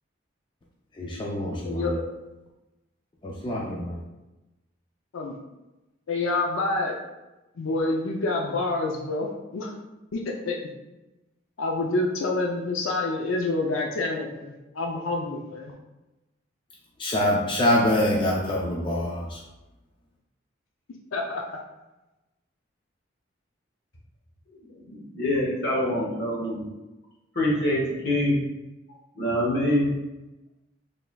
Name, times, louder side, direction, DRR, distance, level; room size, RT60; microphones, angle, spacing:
voice 1, 1.0-2.0 3.2-4.0 17.0-19.4, left 1 dB, 25° left, -3 dB, 0.4 m, -25 dB
voice 2, 6.1-7.0 7.6-9.8 10.1-10.6 11.6-15.7 21.1-21.4, left 2 dB, 85° left, 0 dB, 0.5 m, -27 dB
voice 3, 24.9-26.6 27.3-28.4 29.1-29.9, left 1 dB, 50° left, -3 dB, 1.1 m, -25 dB
4.0 x 3.3 x 2.2 m, 1.0 s
head